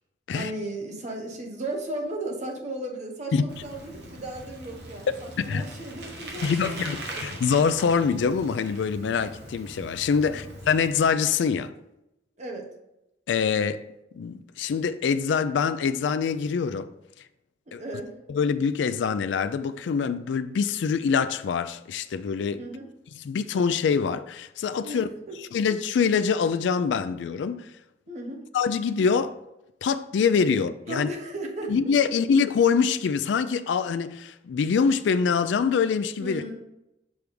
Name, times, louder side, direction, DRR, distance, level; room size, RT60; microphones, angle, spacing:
voice 1, 0.3-7.2 10.2-10.5 12.4-12.7 17.7-18.2 22.6-22.9 24.8-25.0 25.3-25.4 28.1-28.5 30.9-31.7 32.0-32.1 36.2-36.6, right 1 dB, 40° right, 1.0 m, -36 dB
Bicycle, 3.5-11.0, right 1 dB, 65° right, 1.2 m, -41 dB
voice 2, 6.4-11.7 13.3-13.8 14.1-16.9 17.7-17.8 18.3-22.6 23.3-25.1 25.5-27.7 28.5-29.4 29.8-31.1 31.7-36.4, left 6 dB, 80° left, 0.3 m, -24 dB
6.3 x 3.4 x 5.2 m
head